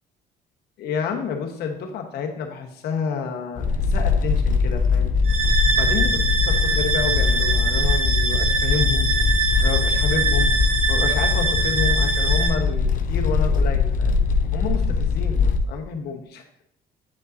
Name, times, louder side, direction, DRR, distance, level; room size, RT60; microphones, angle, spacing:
voice 1, 0.8-5.1 5.7-9.1 9.6-14.2 14.5-16.4, left 6 dB, 70° left, 3 dB, 1.3 m, -29 dB
sound 1, 3.6-15.6, left 5 dB, 55° left, 0.7 m, -21 dB
sound 2, 5.2-12.5, right 4 dB, 35° right, 2.0 m, -23 dB
8.6 x 5.3 x 2.7 m, 0.68 s
cardioid pair, 110°, 17 cm